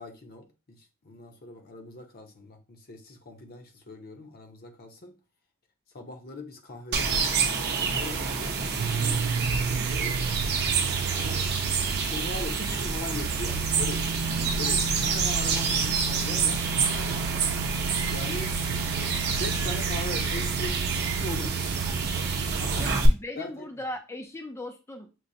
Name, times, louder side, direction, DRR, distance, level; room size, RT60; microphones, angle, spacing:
voice 1, 0.0-5.1 5.9-10.2 10.8-11.4 11.8-17.1 18.1-18.5 19.0-21.7 22.6-22.9 23.3-23.7, left 2 dB, 45° left, 0.8 m, -41 dB
sound 1, 6.9-23.1, right 5 dB, 50° right, 0.7 m, -28 dB
Car acceleration inside, 8.8-22.9, right 5 dB, 80° right, 0.3 m, -32 dB
voice 2, 22.8-25.1, left 1 dB, 15° left, 0.3 m, -38 dB
6.2 x 2.1 x 2.6 m
head